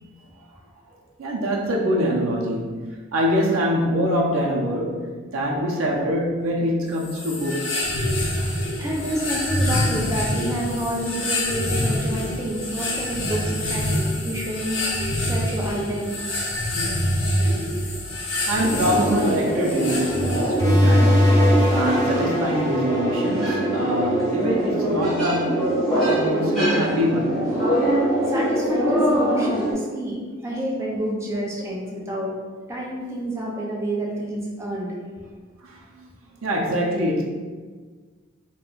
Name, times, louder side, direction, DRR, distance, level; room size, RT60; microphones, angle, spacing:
voice 1, 0.9-2.8 3.1-5.0 5.3-7.7 8.8-8.9 18.5-21.4 21.7-25.7 26.0-27.4 35.6-36.0 36.4-37.2, equal, 80° right, -2 dB, 0.5 m, -24 dB
sound 1, 7.0-20.8, left 1 dB, 70° left, 0.6 m, -26 dB
voice 2, 8.8-14.9 15.3-16.2 28.2-32.3 32.7-34.9, equal, 15° right, -4 dB, 0.4 m, -29 dB
sound 2, 18.6-29.7, right 1 dB, ahead, 0.9 m, -23 dB
sound 3, 20.6-25.8, left 1 dB, 20° left, 1.2 m, -22 dB
2.4 x 2.2 x 3.7 m, 1.5 s
head